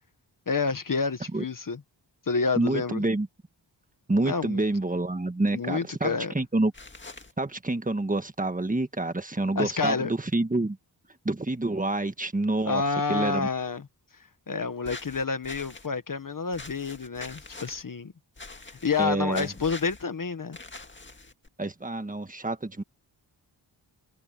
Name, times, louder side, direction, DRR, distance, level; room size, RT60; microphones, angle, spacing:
voice 1, 0.5-1.8 2.3-3.0 4.2-4.6 5.5-6.4 9.5-10.1 12.6-13.9 14.5-18.1 18.7-20.6, left 4 dB, 50° left, 1.4 m, -29 dB
voice 2, 2.6-3.3 4.1-6.7 7.4-10.8 11.2-12.8 13.1-13.5 19.0-19.5 21.6-22.8, right 2 dB, 20° right, 1.6 m, -27 dB
sound 1, 6.7-7.3 14.8-15.9 16.5-17.8 18.4-19.0 19.3-20.0 20.5-21.5, left 3 dB, 25° left, 2.0 m, -44 dB
wide cardioid pair, 100°, 43 cm